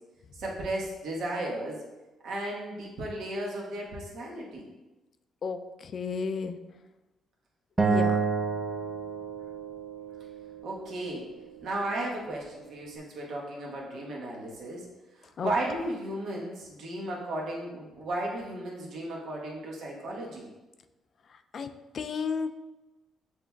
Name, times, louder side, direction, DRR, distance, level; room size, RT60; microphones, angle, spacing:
voice 1, 0.4-1.8 2.2-4.7 10.6-11.3 11.6-14.8 15.2-20.5, right 1 dB, 70° right, -3 dB, 1.2 m, -35 dB
voice 2, 5.4-6.6 7.8-8.2 15.4-15.5 21.5-22.5, left 5 dB, 55° left, 8 dB, 0.3 m, -33 dB
Acoustic guitar, 7.8-11.0, right 4 dB, 25° right, 0.5 m, -29 dB
7.4 x 2.9 x 2.3 m, 1.1 s
cardioid pair, 90°, 0 cm